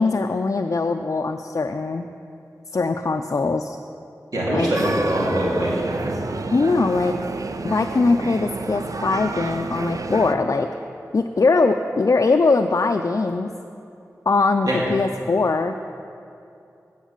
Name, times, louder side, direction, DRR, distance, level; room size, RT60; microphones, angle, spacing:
voice 1, 0.0-2.1 2.7-3.8 4.5-4.7 6.5-7.2 7.6-10.7 11.1-13.5 14.3-15.8, left 3 dB, 55° left, 5 dB, 0.4 m, -21 dB
voice 2, 4.3-6.2 14.7-14.8, right 1 dB, 80° right, -7 dB, 2.5 m, -23 dB
sound 1, 4.7-10.4, right 3 dB, 60° right, 0.5 m, -30 dB
9.2 x 7.2 x 7.3 m, 2.6 s
cardioid pair, 45°, 6 cm